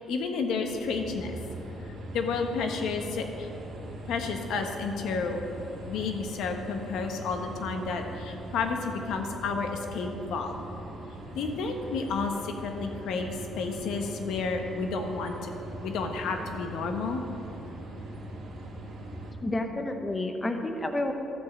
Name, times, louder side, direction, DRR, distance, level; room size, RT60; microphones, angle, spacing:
voice 1, 0.0-1.4 1.8-3.5 4.1-5.4 5.9-10.5 11.3-15.5 15.8-17.2, left 4 dB, 80° left, 4 dB, 1.1 m, -31 dB
sound 1, 0.6-19.3, right 1 dB, 65° right, 2.0 m, -41 dB
voice 2, 19.4-21.1, left 2 dB, 15° left, 5 dB, 0.8 m, -30 dB
13.0 x 4.6 x 7.2 m, 3.0 s
cardioid pair, 130°, 0 cm